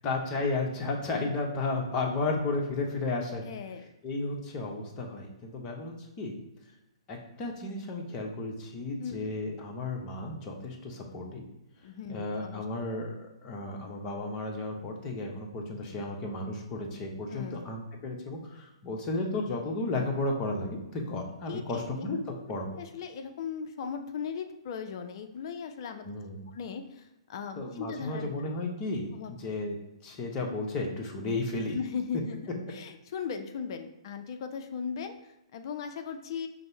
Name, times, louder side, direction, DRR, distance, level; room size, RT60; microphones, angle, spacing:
voice 1, 0.0-3.4 4.0-6.4 7.1-11.4 12.1-22.2 22.5-22.7 26.0-26.5 27.6-29.8 30.0-31.8, left 2 dB, 30° left, 0 dB, 0.9 m, -33 dB
voice 2, 3.4-3.8 9.0-9.4 11.8-12.9 17.3-17.7 21.5-21.9 22.7-26.1 26.5-28.6 29.1-29.6 31.7-32.4 32.7-36.5, left 6 dB, 50° left, 7 dB, 0.5 m, -38 dB
5.2 x 2.1 x 4.5 m, 0.92 s
hypercardioid pair, 125°, 3 cm